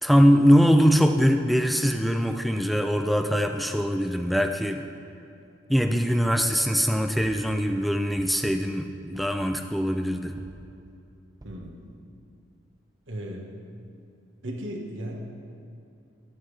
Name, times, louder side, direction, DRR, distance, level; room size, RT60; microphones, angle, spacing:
voice 1, 0.0-4.8 5.7-10.4, equal, ahead, 6 dB, 0.3 m, -22 dB
sound 1, 6.1-6.4 7.2-7.5 8.2-8.6 9.1-9.5 10.4-10.7 11.4-11.7 12.3-12.4 12.6-12.7, equal, 20° right, 0.8 m, -46 dB
voice 2, 11.4-11.8 13.1-13.6 14.4-15.2, right 1 dB, 90° right, 0 dB, 1.5 m, -36 dB
13.5 x 11.0 x 3.4 m, 2.6 s
head